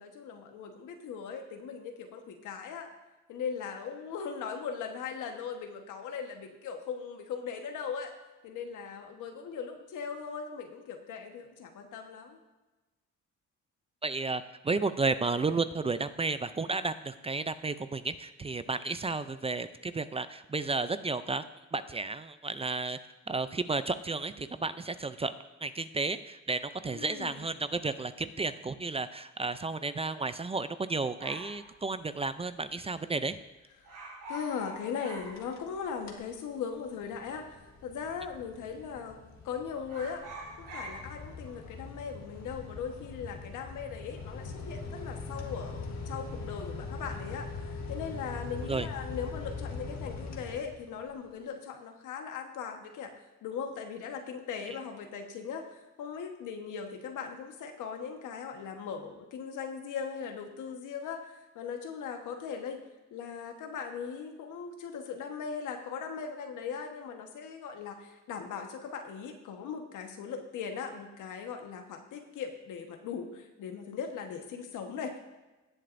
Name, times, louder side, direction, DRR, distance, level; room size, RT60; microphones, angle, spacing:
voice 1, 0.0-2.9 3.3-8.1 8.4-12.4 26.9-27.5 33.8-33.9 34.3-39.2 39.4-40.2 40.6-53.1 53.4-62.8 63.1-75.2, left 6 dB, 80° left, 4 dB, 1.4 m, -39 dB
voice 2, 14.0-21.4 21.7-23.0 23.3-25.3 25.6-33.4 48.7-48.9, right 3 dB, 20° right, 12 dB, 0.4 m, -32 dB
sound 1, 31.2-32.7 32.9-33.0 33.3-33.5 33.8-36.1 36.4-36.5 37.3-37.9 38.2-38.5 38.8-39.5 39.8-44.4 44.7-45.1, right 1 dB, 90° right, 3.8 m, -46 dB
sound 2, 35.2-35.7 36.0-36.4 36.8-51.1, left 4 dB, 65° left, 1.7 m, -42 dB
17.5 x 7.6 x 2.6 m, 1.1 s
cardioid pair, 90°, 30 cm